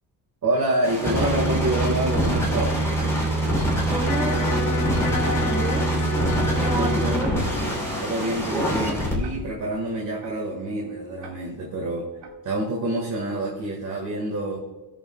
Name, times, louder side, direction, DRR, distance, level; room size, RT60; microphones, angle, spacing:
voice 1, 0.4-2.8 6.6-7.2 8.0-12.1 12.4-14.6, right 1 dB, 50° right, -1 dB, 1.8 m, -27 dB
sound 1, 0.8-9.1, right 1 dB, 5° left, 3.1 m, -24 dB
Tick-tock, 1.2-1.3 2.2-2.3 3.2-3.3 4.2-4.3 5.2-5.3 6.2-6.3 7.2-7.3 8.2-8.3 9.2-9.3 10.2-10.3 11.2-11.3 12.2-12.3, right 6 dB, 80° right, 2.0 m, -43 dB
voice 2, 3.7-5.9 6.1-6.2 6.5-7.3, right 1 dB, 10° right, 2 dB, 1.5 m, -31 dB
Electric guitar, 4.0-10.1, left 2 dB, 45° left, 1.2 m, -31 dB
18.5 x 7.1 x 2.3 m, 1.2 s
cardioid pair, 135°, 41 cm